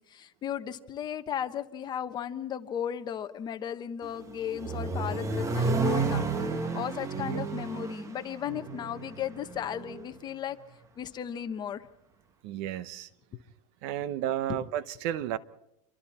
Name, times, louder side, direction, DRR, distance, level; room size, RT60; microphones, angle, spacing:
voice 1, 0.0-6.2 6.7-10.6 11.0-11.9 13.3-13.4 14.5-14.6, left 9 dB, 25° left, 1.2 m, -35 dB
Accelerating revving vroom, 4.0-10.0, right 4 dB, 20° right, 1.3 m, -32 dB
voice 2, 12.4-13.1 13.8-15.4, right 11 dB, 50° right, 1.0 m, -32 dB
28.0 x 23.5 x 4.3 m
supercardioid pair, 145°, 17 cm